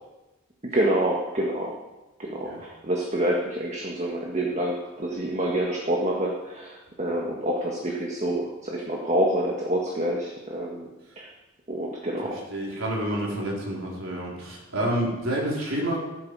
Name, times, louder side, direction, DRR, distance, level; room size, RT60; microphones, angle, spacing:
voice 1, 0.6-1.7 2.2-10.9 11.1-11.3 11.7-12.4, right 1 dB, 30° right, -1 dB, 1.7 m, -27 dB
voice 2, 12.2-16.0, right 1 dB, 70° right, -3 dB, 4.1 m, -29 dB
14.5 x 12.0 x 4.9 m, 1.1 s
head